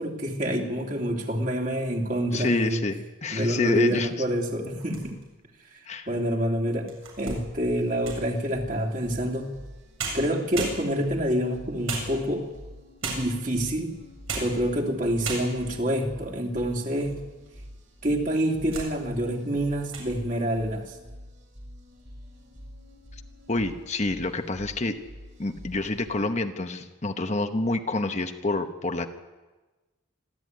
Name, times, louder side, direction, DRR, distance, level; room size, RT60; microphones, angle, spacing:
voice 1, 0.0-2.8 3.3-5.2 6.1-6.9 7.2-9.5 10.1-12.4 13.0-13.9 14.4-17.2 18.0-20.8, equal, 40° right, 1 dB, 3.0 m, -27 dB
voice 2, 2.3-4.1 5.9-6.1 23.5-25.0 25.4-29.1, left 2 dB, 35° left, 6 dB, 1.0 m, -28 dB
sound 1, 4.7-5.4 6.0-6.1 6.7-8.3 9.6-9.7 10.0-11.2 11.9-12.6 13.0-13.5 14.1-14.6 14.9-15.0 15.2-15.8 16.4-17.1 17.5-17.6 18.2-18.9 19.3-19.5 19.8-20.1, right 4 dB, 85° right, 7.7 m, -36 dB
sound 2, 7.6-26.1, equal, 65° right, 6.1 m, -47 dB
26.5 x 13.5 x 9.5 m, 1.2 s
head